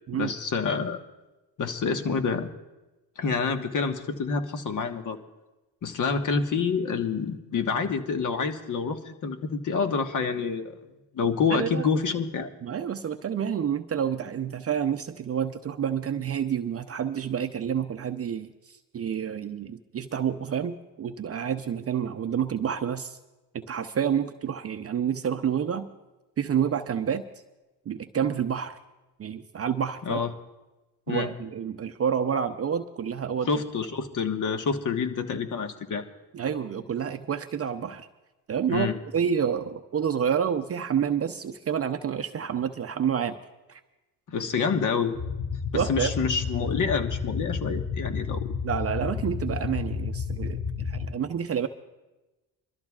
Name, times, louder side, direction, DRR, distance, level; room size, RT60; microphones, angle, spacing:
voice 1, 0.2-1.0 1.6-2.5 3.2-5.2 5.8-10.8 11.1-12.5 30.0-30.3 31.1-31.3 33.5-36.1 38.7-39.0 44.3-45.1 45.7-48.5, left 5 dB, 45° left, 7 dB, 1.4 m, -27 dB
voice 2, 11.5-11.9 12.6-23.2 23.5-25.9 26.4-27.2 27.9-28.8 29.2-30.2 31.1-33.5 36.3-38.1 38.5-38.9 39.1-43.4 43.7-43.8 45.7-46.1 48.6-51.7, right 8 dB, 35° right, 8 dB, 0.6 m, -29 dB
sound 1, 45.1-51.1, left 5 dB, 15° left, 1.1 m, -31 dB
25.5 x 13.0 x 2.4 m, 1.1 s
supercardioid pair, 85°, 42 cm